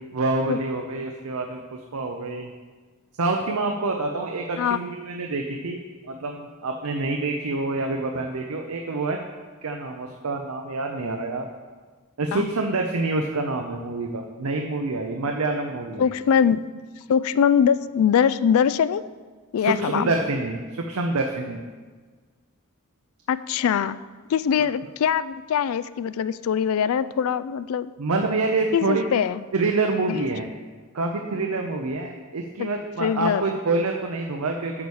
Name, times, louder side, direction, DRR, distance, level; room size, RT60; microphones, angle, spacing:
voice 1, 0.1-1.6 1.9-2.5 3.2-9.2 9.6-11.5 12.2-16.1 19.6-21.6 28.0-29.0 29.5-30.5 30.9-34.9, right 3 dB, 75° right, 3 dB, 0.7 m, -27 dB
voice 2, 16.0-16.6 17.1-19.0 19.5-20.1 23.3-24.0 24.3-27.9 28.7-29.4 30.1-30.2 32.6-32.7 33.0-33.4, left 7 dB, 65° left, 16 dB, 0.3 m, -22 dB
8.5 x 4.7 x 7.0 m, 1.4 s
head